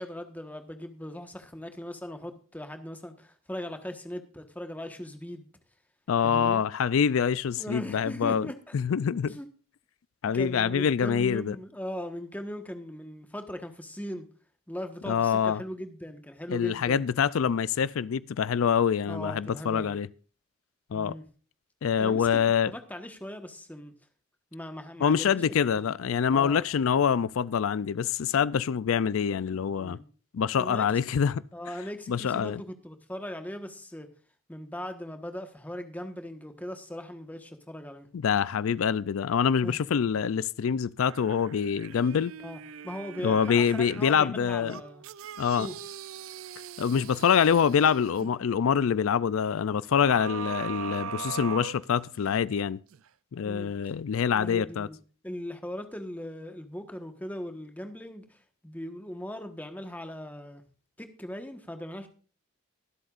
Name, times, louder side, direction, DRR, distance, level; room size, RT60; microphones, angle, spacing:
voice 1, 0.0-5.5 6.2-6.6 7.5-8.5 9.2-9.5 10.2-14.3 14.7-17.1 19.0-20.0 20.9-21.2 22.0-23.9 24.5-25.6 26.3-26.6 29.8-30.0 30.6-30.9 31.5-34.1 34.5-38.1 39.6-39.8 42.4-45.0 45.6-45.7 53.4-53.7 54.3-55.0 55.2-60.6 61.0-62.1, equal, 10° left, 1.3 m, -39 dB
voice 2, 6.1-8.5 8.7-9.4 10.2-11.6 15.1-15.6 16.5-20.1 20.9-21.1 21.8-22.7 25.0-30.0 30.3-31.4 32.1-32.6 38.1-42.3 43.2-44.8 45.4-45.7 46.8-52.8 53.3-54.9, left 7 dB, 85° left, 0.4 m, -25 dB
sound 1, 41.0-44.1 44.7-48.3 50.1-52.4 52.9-53.0, right 7 dB, 85° right, 0.5 m, -41 dB
23.5 x 7.9 x 2.5 m
head